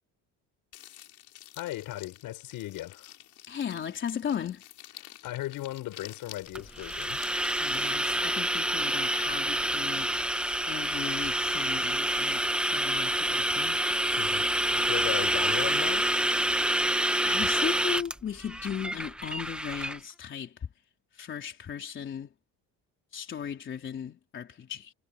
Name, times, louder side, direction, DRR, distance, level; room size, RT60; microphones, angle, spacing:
sound 1, 0.7-8.5, left 13 dB, 60° left, 5.5 m, -50 dB
voice 1, 1.6-3.1 5.0-7.2 14.2-16.2, left 15 dB, 75° left, 5.3 m, -37 dB
voice 2, 3.5-4.6 7.6-10.2 10.7-13.8 17.2-20.7 21.1-22.3 23.1-24.9, left 8 dB, 35° left, 4.0 m, -36 dB
sound 2, 6.6-20.0, right 1 dB, 5° right, 1.0 m, -28 dB
cardioid pair, 180°, 34 cm